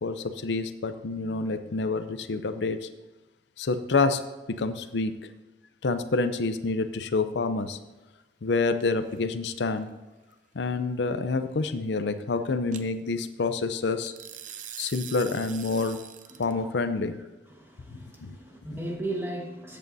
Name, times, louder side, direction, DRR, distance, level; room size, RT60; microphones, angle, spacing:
voice 1, 0.0-2.9 3.6-4.2 4.5-5.1 5.8-7.8 8.4-9.9 10.5-14.1 14.8-16.0 16.4-17.1 17.9-18.3, left 3 dB, 80° left, 10 dB, 0.6 m, -28 dB
sound 1, 8.8-9.2 12.7-12.8 14.1-16.5, right 9 dB, 45° right, 0.6 m, -42 dB
voice 2, 17.5-19.8, right 1 dB, 15° right, 0 dB, 1.4 m, -36 dB
14.0 x 8.4 x 2.7 m, 1.1 s
head